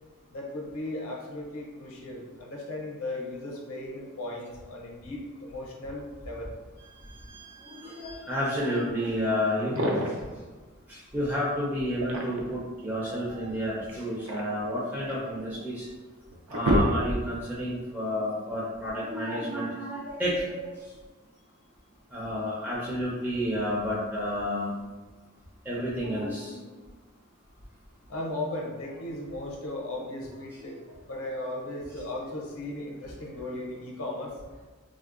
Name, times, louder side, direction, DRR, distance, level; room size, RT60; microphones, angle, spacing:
voice 1, 0.3-6.5 28.1-34.3, left 1 dB, 70° left, -1 dB, 0.6 m, -36 dB
voice 2, 7.2-9.9 10.9-15.9 16.5-20.7 22.1-24.7 25.7-26.6, equal, 10° right, -8 dB, 0.4 m, -30 dB
sound 1, 9.6-10.3 11.8-12.6 13.9-15.3 15.9-16.0 16.3-17.5, equal, 70° right, 0.4 m, -28 dB
3.6 x 2.0 x 2.4 m, 1.3 s
head